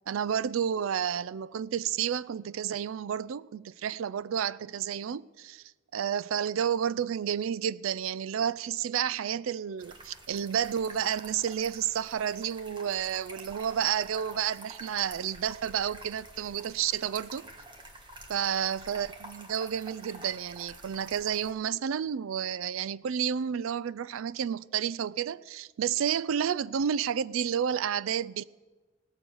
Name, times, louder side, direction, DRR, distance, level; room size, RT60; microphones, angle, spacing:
voice 1, 0.1-5.6 5.9-17.4 18.3-28.4, right 8 dB, 75° right, 0.4 m, -31 dB
sound 1, 9.8-21.5, right 2 dB, 25° right, 1.5 m, -48 dB
18.0 x 7.0 x 7.2 m
head